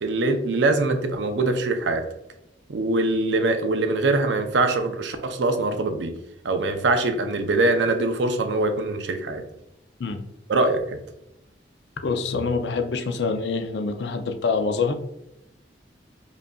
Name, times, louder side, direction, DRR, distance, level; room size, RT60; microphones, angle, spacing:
voice 1, 0.0-2.0 2.7-6.1 6.4-9.4 10.5-11.0, right 2 dB, 85° right, 7 dB, 0.5 m, -23 dB
voice 2, 12.0-14.9, left 4 dB, 70° left, 7 dB, 0.4 m, -25 dB
5.1 x 2.5 x 2.3 m, 0.82 s
head